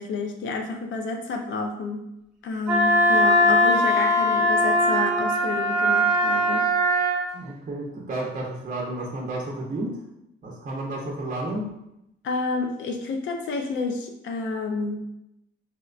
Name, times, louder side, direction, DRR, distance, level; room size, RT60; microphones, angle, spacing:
voice 1, 0.0-2.0 2.4-6.7 12.2-15.0, left 3 dB, 70° left, 3 dB, 0.5 m, -29 dB
Wind instrument woodwind instrument, 2.7-7.2, equal, 5° right, 1.0 m, -20 dB
voice 2, 7.3-10.0 10.4-11.7, right 1 dB, 40° right, -2 dB, 0.7 m, -31 dB
4.3 x 2.1 x 2.4 m, 0.82 s
cardioid pair, 90°, 20 cm